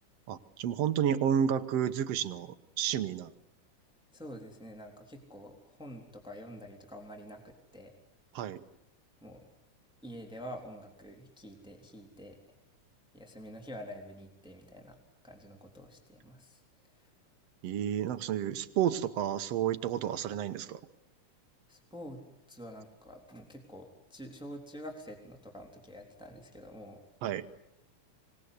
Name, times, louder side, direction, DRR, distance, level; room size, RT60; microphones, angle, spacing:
voice 1, 0.3-3.3 8.3-8.6 17.6-20.8 27.2-27.5, right 9 dB, 60° right, 10 dB, 2.0 m, -31 dB
voice 2, 4.1-7.9 9.2-9.4 10.0-12.6 13.1-15.0 15.2-16.6 16.9-17.1 21.7-22.2 22.5-27.0, equal, ahead, 3 dB, 3.3 m, -47 dB
25.5 x 20.0 x 9.6 m, 0.83 s
omnidirectional pair, 3.6 m